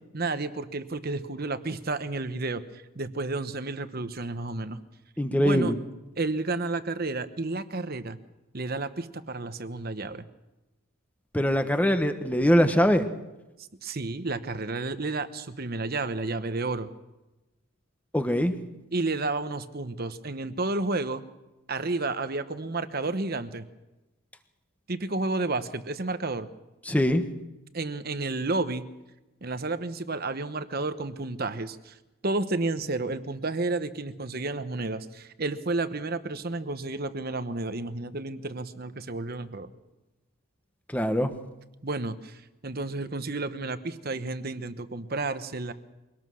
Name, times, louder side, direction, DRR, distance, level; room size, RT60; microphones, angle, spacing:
voice 1, 0.1-4.8 5.4-5.7 6.2-8.2 8.5-10.2 13.8-16.9 18.9-21.2 21.7-23.7 24.9-26.5 27.7-28.9 29.4-32.0 32.2-39.7 41.8-45.7, right 3 dB, 45° right, 11 dB, 1.0 m, -31 dB
voice 2, 5.2-5.8 11.3-13.1 18.1-18.5 26.8-27.2 40.9-41.3, equal, 5° left, 8 dB, 1.2 m, -22 dB
23.5 x 18.5 x 6.3 m, 1.0 s
head